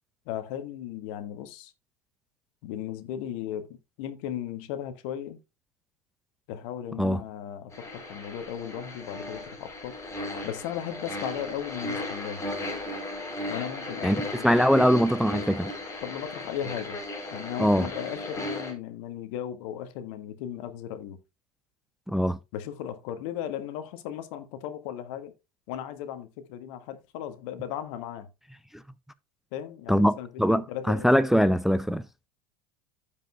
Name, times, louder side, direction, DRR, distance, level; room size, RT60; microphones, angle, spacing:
voice 1, 0.2-1.7 2.6-5.4 6.5-10.0 10.4-12.5 13.5-14.7 16.0-17.0 17.3-21.2 22.5-25.3 25.7-28.3 29.5-31.2, left 10 dB, 55° left, 1.7 m, -36 dB
sound 1, 7.7-18.7, left 1 dB, 15° left, 3.8 m, -36 dB
voice 2, 14.4-15.7 17.6-17.9 22.1-22.4 29.9-32.0, equal, ahead, 0.5 m, -22 dB
15.0 x 5.3 x 2.3 m
figure-of-eight pair, 80°, 19 cm